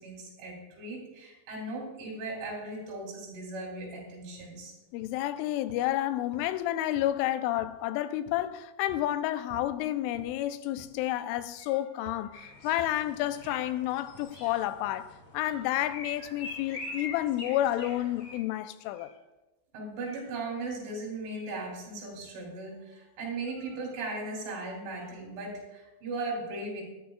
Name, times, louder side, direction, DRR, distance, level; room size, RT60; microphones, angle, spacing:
voice 1, 0.0-4.7 19.7-26.8, right 2 dB, 75° right, 5.6 m, -38 dB
sound 1, 4.4-4.5 5.0-5.3 5.7-5.9 6.3-7.2 7.6-7.8 8.2-8.5 8.9-9.1 9.5-9.8 10.1-10.4 10.8-11.0 11.4-11.7 12.0-12.2 12.8-13.0 13.4-13.6 14.1-14.3, right 4 dB, 60° right, 2.4 m, -51 dB
voice 2, 4.9-19.1, left 13 dB, 90° left, 3.1 m, -30 dB
sound 2, 11.5-12.6 13.2-13.8 14.3-14.7 15.3-16.0 16.6-17.1 17.7-18.2 18.8-19.2 19.9-20.4 21.2-25.1, left 1 dB, 25° left, 5.7 m, -59 dB
sound 3, 12.3-18.4, left 3 dB, 45° left, 2.1 m, -44 dB
20.0 x 11.5 x 2.4 m
omnidirectional pair, 5.5 m